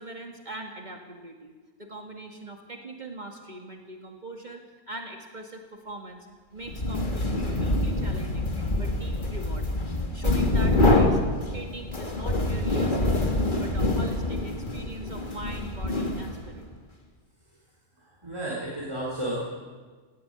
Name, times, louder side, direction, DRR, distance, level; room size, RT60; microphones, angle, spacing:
voice 1, 0.0-6.3 6.5-8.5 8.7-11.2 11.5-13.3 13.6-16.7, right 1 dB, 40° right, 1 dB, 2.2 m, -41 dB
sound 1, 6.7-16.6, left 2 dB, 45° left, 2.3 m, -26 dB
voice 2, 18.2-19.4, right 1 dB, 25° right, -5 dB, 4.1 m, -32 dB
19.0 x 17.0 x 9.0 m, 1.4 s
omnidirectional pair, 1.1 m